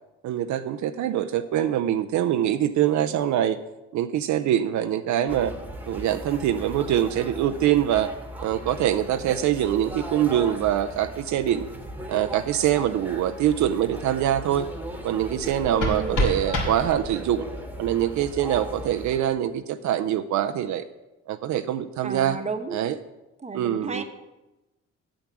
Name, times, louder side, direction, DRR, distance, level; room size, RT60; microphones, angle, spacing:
voice 1, 0.2-3.6 3.9-5.5 5.9-8.1 8.4-11.7 12.1-14.7 15.0-17.5 17.8-20.8 21.3-22.4 22.7-23.0 23.5-24.0, right 11 dB, 70° right, 9 dB, 0.5 m, -24 dB
sound 1, 5.3-19.2, equal, 5° right, 1.3 m, -38 dB
sound 2, 15.4-17.4, left 1 dB, 75° left, 2.6 m, -28 dB
voice 2, 15.7-16.2 22.0-22.8 23.4-24.0, right 3 dB, 20° right, 7 dB, 1.0 m, -32 dB
8.7 x 7.3 x 6.1 m, 1.0 s
cardioid pair, 90°, 30 cm